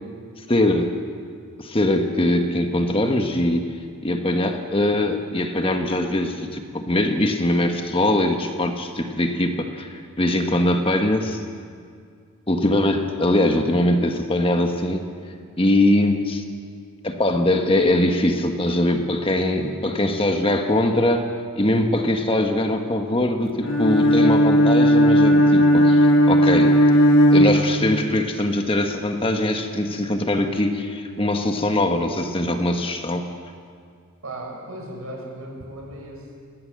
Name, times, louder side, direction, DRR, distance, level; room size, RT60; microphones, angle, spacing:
voice 1, 0.5-0.9 1.6-3.6 4.0-11.4 12.5-15.1 15.6-16.4 17.0-21.3 21.6-26.8 27.3-33.3, left 1 dB, 25° left, 5 dB, 1.4 m, -22 dB
Bowed string instrument, 23.6-28.2, equal, 65° left, 1.6 m, -15 dB
voice 2, 34.2-36.5, right 1 dB, 80° right, 0 dB, 6.1 m, -36 dB
22.0 x 17.0 x 7.6 m, 2.2 s
head